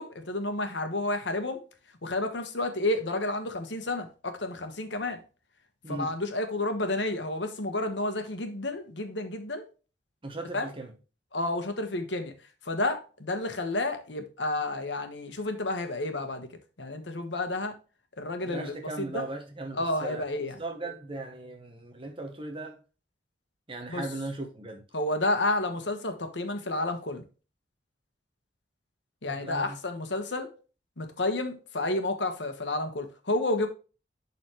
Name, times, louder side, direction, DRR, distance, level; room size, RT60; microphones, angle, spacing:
voice 1, 0.0-1.6 2.0-5.2 5.9-9.6 10.5-10.7 11.3-12.3 12.6-16.5 16.8-17.7 18.2-19.2 19.7-20.6 23.9-24.0 24.9-27.2 29.2-30.5 31.0-33.7, left 2 dB, 90° left, 1.4 m, -30 dB
voice 2, 10.2-10.9 18.5-22.8 23.7-24.8 29.3-29.8, right 2 dB, 30° right, 1.0 m, -38 dB
11.5 x 4.2 x 3.1 m
head